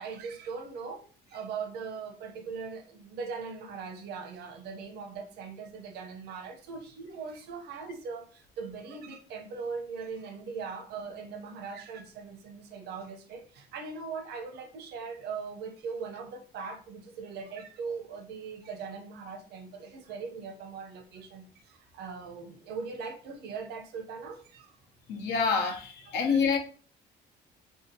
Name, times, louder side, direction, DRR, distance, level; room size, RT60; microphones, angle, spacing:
voice 1, 0.0-24.7 26.1-26.4, right 5 dB, 75° right, 0.7 m, -40 dB
voice 2, 25.1-26.6, left 5 dB, 75° left, 0.8 m, -27 dB
3.4 x 2.8 x 2.7 m
cardioid pair, 110°, 17 cm